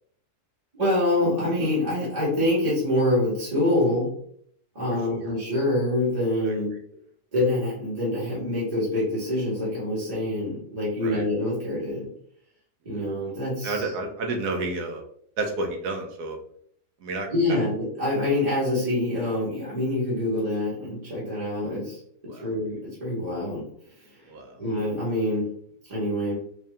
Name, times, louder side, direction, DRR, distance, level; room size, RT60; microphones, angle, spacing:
voice 1, 0.8-4.1 4.7-6.7 7.3-12.1 12.8-13.9 17.3-22.0 22.3-23.6 24.0-24.2 24.6-25.5 25.9-26.4, left 1 dB, 25° right, -9 dB, 1.5 m, -25 dB
voice 2, 13.6-15.0 15.4-16.4 17.0-17.3 22.3-22.4 24.3-24.6, right 2 dB, 80° right, 3 dB, 1.3 m, -30 dB
3.8 x 2.7 x 3.3 m, 0.65 s
omnidirectional pair, 1.7 m